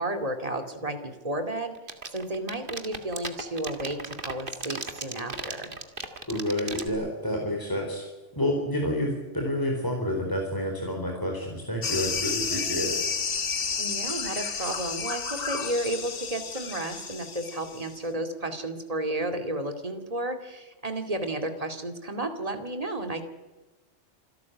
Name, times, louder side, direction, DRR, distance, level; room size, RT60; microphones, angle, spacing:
voice 1, 0.0-1.7 2.1-5.7 13.8-23.2, right 1 dB, 30° right, 6 dB, 2.6 m, -32 dB
sound 1, 1.8-6.9, right 3 dB, 45° right, 2.2 m, -34 dB
voice 2, 6.3-8.1 8.3-13.0, left 1 dB, 15° left, 0 dB, 4.3 m, -29 dB
sound 2, 11.8-18.0, left 5 dB, 50° left, 1.3 m, -31 dB
27.0 x 12.5 x 9.6 m, 1.2 s
omnidirectional pair, 1.2 m